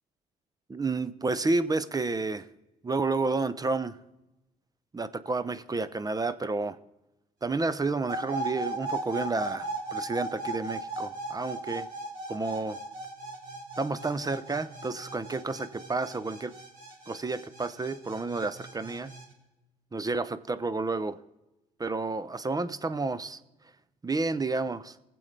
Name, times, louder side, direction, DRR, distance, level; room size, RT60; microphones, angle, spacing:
voice 1, 0.7-2.4 2.8-4.0 4.9-6.8 7.4-11.9 12.3-12.8 13.8-16.5 17.1-19.1 19.9-21.2 21.8-23.4 24.0-24.9, right 3 dB, 25° right, 15 dB, 0.7 m, -30 dB
sound 1, 8.1-19.2, right 2 dB, 60° right, 5.0 m, -37 dB
20.0 x 7.7 x 3.4 m, 1.0 s
hypercardioid pair, 55°, 16 cm